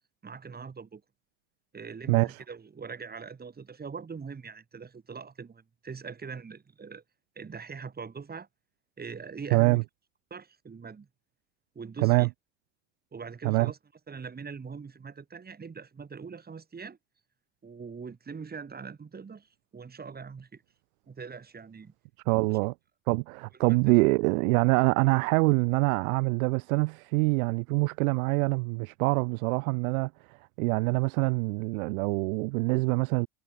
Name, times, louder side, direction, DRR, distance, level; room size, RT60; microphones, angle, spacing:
voice 1, 0.2-1.0 1.7-7.0 7.3-8.5 9.0-9.8 10.3-11.1 11.7-12.3 13.1-13.8 14.1-17.0 17.6-20.6 21.1-21.9 22.4-22.5 23.7-23.9, right 5 dB, 20° right, 3.4 m, -42 dB
voice 2, 9.5-9.8 12.0-12.3 13.4-13.7 22.3-22.7 23.1-33.3, right 29 dB, 65° right, 0.6 m, -25 dB
hypercardioid pair, 90°, 45 cm